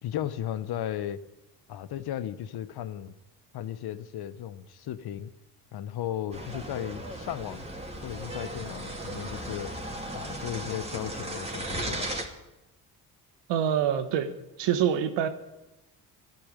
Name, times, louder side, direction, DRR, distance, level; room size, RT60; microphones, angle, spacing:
voice 1, 0.0-1.2 1.7-3.1 3.5-5.3 5.7-7.6 8.0-9.7 10.1-12.1, left 11 dB, 60° left, 1.0 m, -35 dB
sound 1, 6.3-12.2, right 1 dB, 15° right, 2.9 m, -36 dB
voice 2, 13.5-14.3 14.6-15.3, right 9 dB, 80° right, 1.6 m, -25 dB
12.5 x 10.5 x 9.8 m
supercardioid pair, 75°, 43 cm